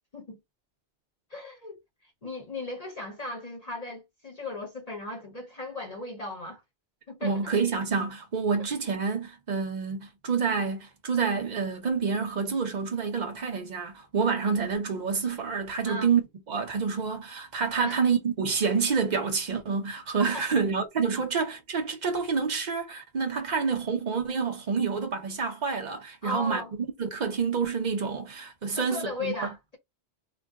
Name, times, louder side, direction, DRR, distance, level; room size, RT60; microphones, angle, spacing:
voice 1, 1.3-6.6 7.1-7.4 15.8-16.1 17.8-18.0 20.3-20.4 21.1-21.2 23.5-23.6 26.2-26.7 28.7-29.8, left 2 dB, 40° left, 0.7 m, -37 dB
voice 2, 7.2-16.2 16.5-26.6 27.0-29.3, right 5 dB, 45° right, 0.7 m, -28 dB
2.5 x 2.2 x 3.4 m
omnidirectional pair, 1.1 m